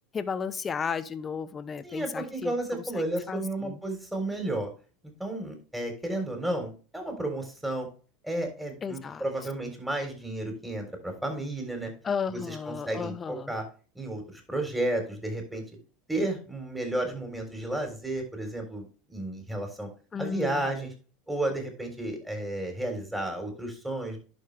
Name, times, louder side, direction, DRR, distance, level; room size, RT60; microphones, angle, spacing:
voice 1, 0.1-3.8 8.8-9.2 12.0-13.5 20.1-20.7, left 6 dB, 30° left, 14 dB, 0.8 m, -34 dB
voice 2, 1.8-4.7 5.2-7.9 8.2-11.9 12.3-13.6 14.0-15.6 16.1-19.9 20.2-20.9 21.3-24.2, right 1 dB, 5° right, 3 dB, 3.6 m, -32 dB
11.0 x 5.4 x 3.3 m, 0.37 s
hypercardioid pair, 90°, 0 cm